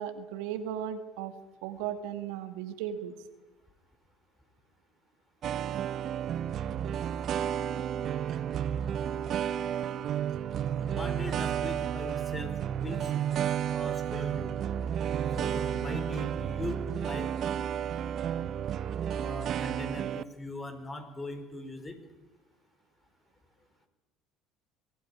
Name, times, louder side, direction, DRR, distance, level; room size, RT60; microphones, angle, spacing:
voice 1, 0.0-1.3 1.6-3.1, right 9 dB, 75° right, 8 dB, 2.0 m, -36 dB
sound 1, 5.4-20.2, right 9 dB, 50° right, 0.8 m, -32 dB
voice 2, 10.8-13.1 13.7-14.5 15.3-17.3 19.2-22.0, left 2 dB, 25° left, 8 dB, 4.6 m, -40 dB
23.5 x 15.0 x 10.0 m, 1.1 s
hypercardioid pair, 80°, 0 cm